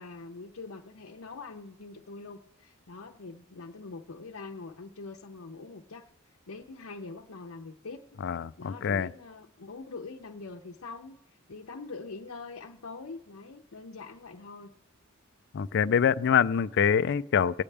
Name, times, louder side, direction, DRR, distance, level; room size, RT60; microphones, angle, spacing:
voice 1, 0.0-6.1 6.5-8.2 8.6-14.7, left 3 dB, 90° left, 0.7 m, -44 dB
voice 2, 8.2-9.1 15.5-17.6, left 7 dB, 55° left, 0.4 m, -25 dB
24.5 x 8.5 x 3.4 m
head